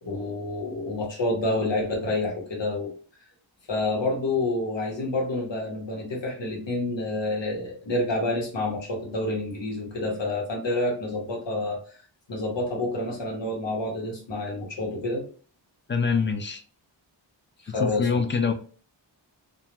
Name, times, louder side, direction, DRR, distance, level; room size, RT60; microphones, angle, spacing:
voice 1, 0.0-2.9 3.7-11.8 12.3-15.2 17.6-18.2, left 2 dB, 65° left, -2 dB, 1.0 m, -28 dB
voice 2, 15.9-16.6 17.7-18.5, left 5 dB, 25° left, 6 dB, 0.3 m, -25 dB
2.4 x 2.1 x 2.9 m, 0.41 s
wide cardioid pair, 85°, 47 cm